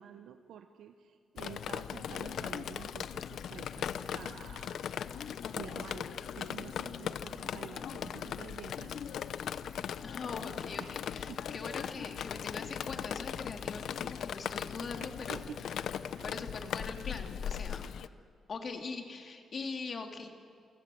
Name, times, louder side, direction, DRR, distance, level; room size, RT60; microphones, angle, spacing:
voice 1, 0.0-4.9 5.5-9.2 10.8-11.0 11.3-11.4 15.0-15.6 16.2-16.4, right 9 dB, 80° right, 7 dB, 1.1 m, -49 dB
Drip, 1.4-18.1, left 8 dB, 65° left, 0.7 m, -39 dB
voice 2, 10.0-15.5 16.2-17.9 18.5-20.3, left 4 dB, 35° left, 4 dB, 2.4 m, -42 dB
28.5 x 24.5 x 7.7 m, 2.2 s
wide cardioid pair, 170°, 0 cm